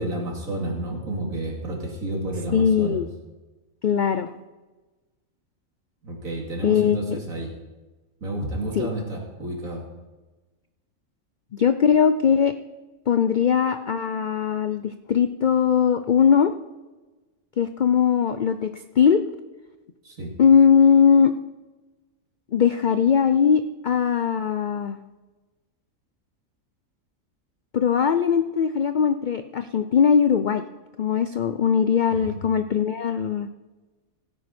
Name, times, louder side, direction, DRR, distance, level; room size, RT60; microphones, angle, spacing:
voice 1, 0.0-3.0 6.0-7.5 8.2-9.8 20.0-20.3 32.1-32.4, right 1 dB, 75° right, -1 dB, 3.2 m, -30 dB
voice 2, 2.5-3.1 3.8-4.3 6.6-7.2 8.7-8.9 11.5-12.5 13.1-16.5 17.6-18.7 19.0-19.2 20.4-21.3 22.5-25.0 27.7-30.6 31.0-33.5, left 7 dB, 65° left, 10 dB, 0.4 m, -20 dB
16.5 x 9.4 x 4.3 m, 1.2 s
omnidirectional pair, 1.4 m